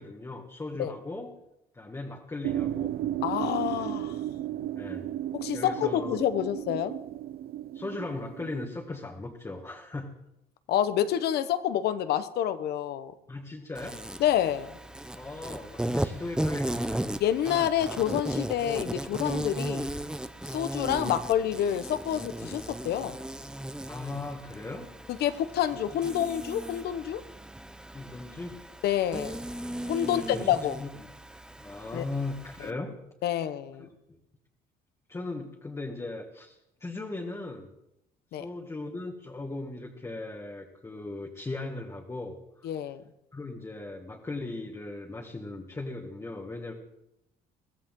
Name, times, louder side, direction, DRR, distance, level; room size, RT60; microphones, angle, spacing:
voice 1, 0.0-1.3 1.7-2.9 4.8-5.1 5.5-6.2 7.7-10.2 13.3-14.0 15.1-17.0 23.8-24.9 26.0-26.1 27.9-28.6 30.0-31.1 31.6-32.9 34.1-34.2 35.1-37.7 38.3-42.7 43.3-46.7, left 2 dB, 15° left, -1 dB, 1.8 m, -38 dB
sound 1, 2.4-8.7, right 12 dB, 65° right, 0.6 m, -34 dB
voice 2, 3.2-4.2 5.3-6.9 10.7-13.1 14.2-14.7 17.2-19.9 20.5-23.2 25.1-27.2 28.8-29.4 29.8-30.8 31.9-32.0 32.6-32.7 33.2-33.9 38.3-38.4 42.6-43.0, left 10 dB, 70° left, 11 dB, 1.1 m, -28 dB
Insect, 13.7-32.7, right 1 dB, 5° right, 0.7 m, -36 dB
22.5 x 15.0 x 3.8 m, 0.86 s
cardioid pair, 110°, 17 cm